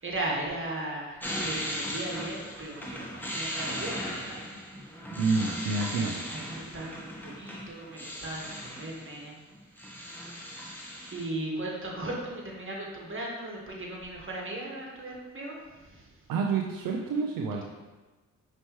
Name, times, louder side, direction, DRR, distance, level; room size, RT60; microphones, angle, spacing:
voice 1, 0.0-4.4 4.8-5.0 5.9-9.4 11.1-16.1, right 2 dB, 35° right, -2 dB, 1.4 m, -37 dB
sound 1, 1.2-9.2 9.5-11.2, equal, 5° left, 1.1 m, -37 dB
voice 2, 5.2-6.2 16.3-17.6, right 4 dB, 75° right, 1 dB, 0.5 m, -28 dB
5.4 x 3.1 x 3.0 m, 1.2 s
supercardioid pair, 50°, 34 cm